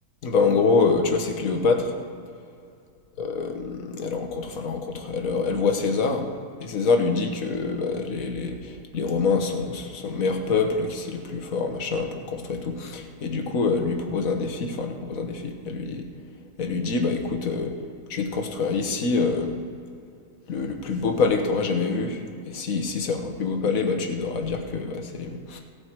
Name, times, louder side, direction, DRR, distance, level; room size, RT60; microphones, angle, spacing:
voice 1, 0.2-2.0 3.2-6.3 6.6-16.0 16.6-17.8 18.1-19.5 20.5-25.6, left 4 dB, 55° left, 3 dB, 1.5 m, -25 dB
16.5 x 8.0 x 4.5 m, 2.4 s
omnidirectional pair, 1.8 m